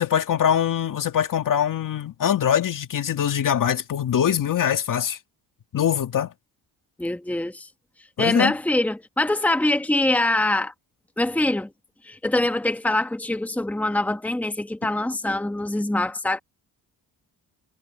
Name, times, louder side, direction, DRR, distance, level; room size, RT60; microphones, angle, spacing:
voice 1, 0.0-5.2 5.7-6.3 8.2-8.5, left 9 dB, 55° left, 2.2 m, -23 dB
voice 2, 7.0-7.7 8.2-10.7 11.2-11.7 12.0-16.4, left 2 dB, 5° left, 1.4 m, -24 dB
cardioid pair, 125°, 38 cm